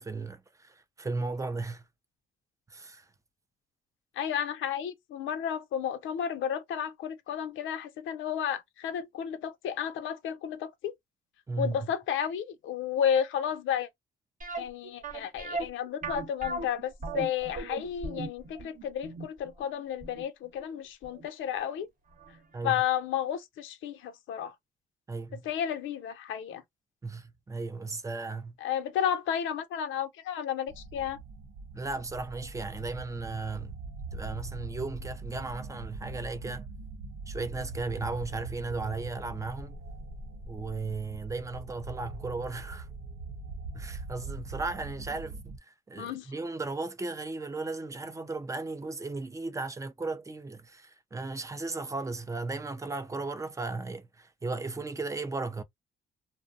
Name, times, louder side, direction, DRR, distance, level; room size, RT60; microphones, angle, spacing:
voice 1, 0.0-1.9 2.7-3.1 11.5-11.8 22.5-22.8 25.1-25.4 27.0-28.6 31.7-33.8 34.1-36.7 37.3-39.8 40.5-42.9 43.7-55.6, right 3 dB, 15° right, 0.4 m, -36 dB
voice 2, 4.2-10.9 11.6-13.9 14.6-21.9 22.6-24.5 25.4-26.6 28.6-31.2 46.0-46.3, left 9 dB, 80° left, 0.6 m, -32 dB
sound 1, 14.4-21.3 21.5-21.6 22.2-22.3 22.6-22.7, right 3 dB, 40° right, 0.9 m, -38 dB
sound 2, 30.7-45.6, right 3 dB, 75° right, 0.6 m, -42 dB
2.6 x 2.0 x 2.4 m
cardioid pair, 90°, 20 cm